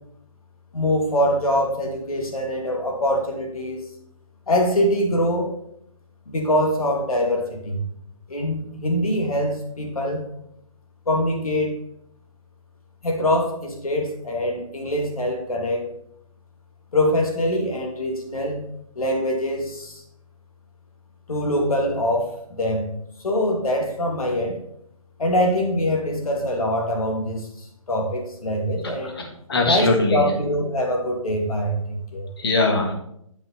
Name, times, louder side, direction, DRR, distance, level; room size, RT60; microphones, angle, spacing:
voice 1, 0.7-3.9 4.5-5.5 6.3-7.9 8.3-10.2 11.1-11.8 13.0-15.9 16.9-18.6 19.0-20.0 21.3-22.9 23.2-24.6 25.2-27.5 27.9-29.1 29.6-32.3, equal, 90° left, 1 dB, 2.4 m, -23 dB
voice 2, 28.8-30.3 32.4-32.9, left 3 dB, 45° left, 3 dB, 1.7 m, -22 dB
9.2 x 5.6 x 4.1 m, 0.74 s
hypercardioid pair, 170°, 18 cm